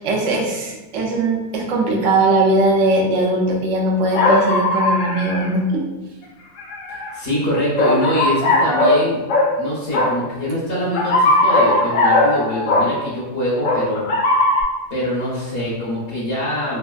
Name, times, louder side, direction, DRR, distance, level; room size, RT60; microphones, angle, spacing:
voice 1, 0.0-5.8, right 2 dB, 80° right, 0 dB, 1.0 m, -19 dB
sound 1, 4.1-5.4 6.6-7.1 7.8-9.0 9.3-9.5 9.9-10.1 10.9-12.9 13.6-14.6, left 2 dB, 85° left, 1.0 m, -17 dB
voice 2, 6.9-9.2 9.6-14.0 14.9-16.8, equal, 55° left, -6 dB, 0.9 m, -24 dB
3.1 x 2.4 x 2.2 m, 1.1 s
omnidirectional pair, 1.3 m